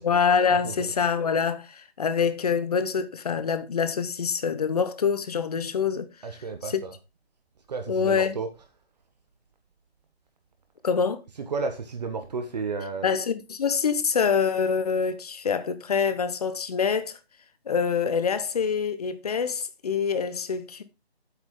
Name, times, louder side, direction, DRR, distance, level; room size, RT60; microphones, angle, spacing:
voice 1, 0.0-6.1 6.6-6.8 7.9-8.4 10.8-11.2 13.0-17.2 17.7-20.8, left 6 dB, 35° left, 1.0 m, -25 dB
voice 2, 0.6-0.9 6.2-7.0 7.7-8.5 11.3-13.1, right 4 dB, 40° right, 1.3 m, -32 dB
8.8 x 8.3 x 3.8 m
figure-of-eight pair, 155°, 32 cm